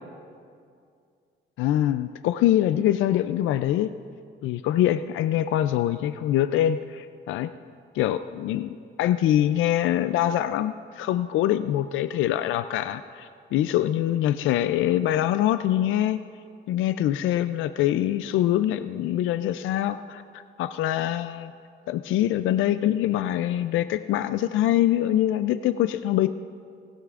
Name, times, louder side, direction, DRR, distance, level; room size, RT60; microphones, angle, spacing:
voice 1, 1.6-3.9 4.4-7.5 7.9-16.2 16.7-20.2 20.6-21.5 21.9-26.3, left 12 dB, 80° left, 11 dB, 0.4 m, -24 dB
18.0 x 15.5 x 2.5 m, 2.2 s
cardioid pair, 90°, 20 cm